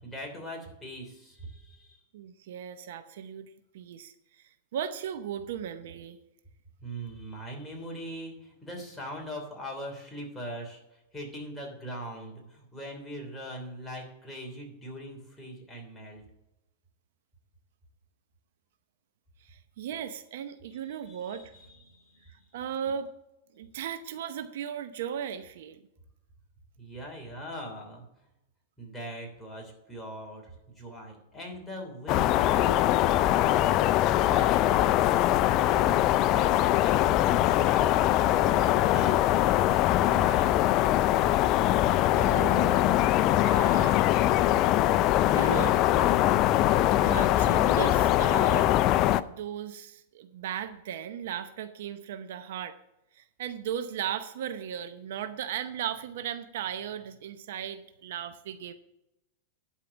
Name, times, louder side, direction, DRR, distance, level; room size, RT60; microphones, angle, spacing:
voice 1, 0.0-2.0 6.8-16.2 20.9-22.5 26.8-28.0 28.8-33.8 34.2-39.2 40.1-40.6, equal, 5° left, -1 dB, 3.0 m, -41 dB
voice 2, 2.1-3.5 3.7-4.4 4.7-6.2 19.4-21.5 22.5-23.1 23.5-25.8 42.2-44.0 44.4-44.9 45.2-45.8 47.0-48.8 49.1-52.8 53.1-58.7, right 9 dB, 70° right, 10 dB, 0.7 m, -36 dB
sound 1, 32.1-49.2, left 14 dB, 40° left, 0.4 m, -22 dB
11.0 x 4.8 x 7.0 m, 0.90 s
supercardioid pair, 140°, 0 cm